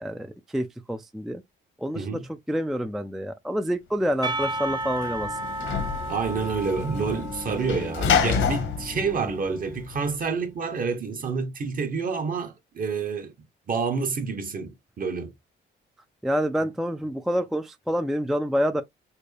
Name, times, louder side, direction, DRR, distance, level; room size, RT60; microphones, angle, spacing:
voice 1, 0.0-1.4 1.8-2.2 2.5-5.4 16.2-18.8, equal, ahead, 0.3 m, -27 dB
Percussion / Church bell, 4.2-9.2, right 1 dB, 20° right, 0.7 m, -34 dB
Sliding door / Slam, 4.3-10.2, left 6 dB, 75° left, 1.0 m, -29 dB
voice 2, 6.1-13.3 13.7-15.3, right 5 dB, 45° right, 1.0 m, -28 dB
4.3 x 2.1 x 3.2 m
cardioid pair, 90°, 20 cm